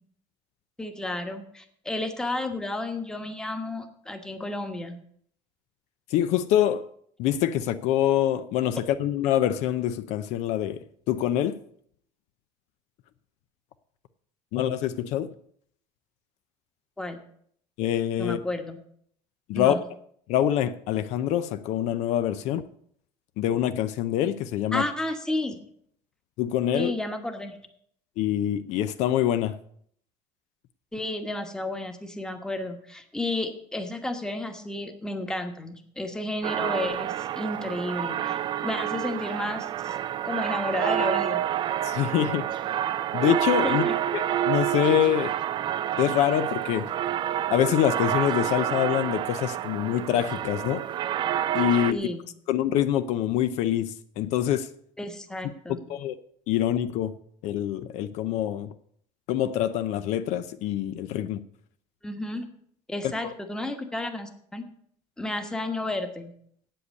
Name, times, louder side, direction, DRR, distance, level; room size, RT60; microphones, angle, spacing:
voice 1, 0.8-5.0 17.0-17.2 18.2-18.8 19.5-19.8 24.7-25.6 26.7-27.6 30.9-39.9 40.2-41.4 43.6-43.9 51.9-52.2 55.0-55.8 62.0-62.4 62.9-64.6 65.2-66.3, left 1 dB, 5° left, 1.2 m, -32 dB
voice 2, 6.1-6.9 7.2-10.8 11.1-11.6 14.5-15.3 17.8-18.4 19.5-19.8 20.3-22.6 23.4-24.9 26.4-26.9 28.2-29.6 41.8-42.5 43.1-43.8 44.1-45.4 46.0-46.9 47.5-50.8 51.5-52.0 52.5-54.7 55.7-56.2 56.5-57.1 57.4-58.7 59.3-61.4, left 11 dB, 60° left, 0.6 m, -25 dB
sound 1, 36.4-51.9, right 11 dB, 35° right, 0.4 m, -28 dB
8.3 x 7.8 x 8.2 m
cardioid pair, 150°, 13 cm